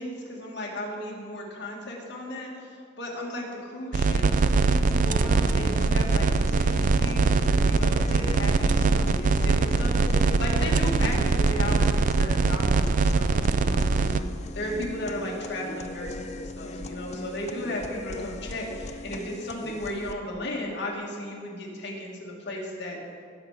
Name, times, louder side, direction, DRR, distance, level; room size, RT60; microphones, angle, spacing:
voice 1, 0.0-14.0 14.5-23.0, left 1 dB, 60° left, -2 dB, 2.1 m, -35 dB
sound 1, 3.9-14.2, right 4 dB, 45° right, 0.3 m, -22 dB
sound 2, 4.1-20.1, left 2 dB, 35° left, 0.5 m, -38 dB
17.5 x 5.9 x 5.0 m, 2.3 s
head